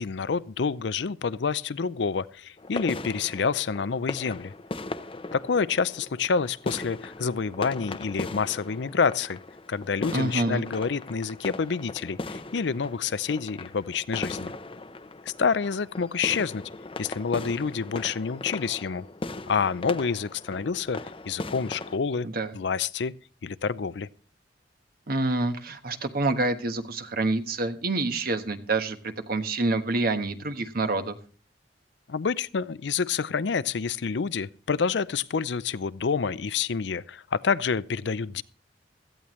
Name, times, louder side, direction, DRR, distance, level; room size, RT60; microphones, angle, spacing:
voice 1, 0.0-4.5 5.3-9.4 9.7-14.5 15.4-16.6 17.0-19.1 19.5-21.0 21.3-22.3 22.5-23.1 23.4-24.1 32.1-38.4, left 5 dB, 70° left, 0.5 m, -28 dB
sound 1, 2.6-22.0, left 2 dB, 30° left, 0.7 m, -38 dB
voice 2, 10.1-10.6 22.2-22.5 25.1-31.2, right 2 dB, 55° right, 1.3 m, -27 dB
17.0 x 14.0 x 3.1 m
head